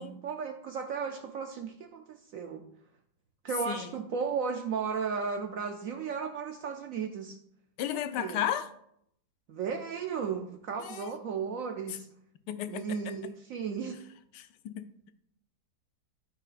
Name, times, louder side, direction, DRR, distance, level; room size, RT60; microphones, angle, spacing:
voice 1, 0.0-2.6 3.4-7.4 8.2-8.4 9.5-12.1 12.7-14.0, right 6 dB, 65° right, 0.9 m, -35 dB
voice 2, 3.7-4.0 7.8-8.7 10.8-11.1 11.9-12.0 12.5-13.2 14.3-15.1, left 10 dB, 90° left, 1.2 m, -35 dB
13.0 x 5.3 x 2.5 m
omnidirectional pair, 1.8 m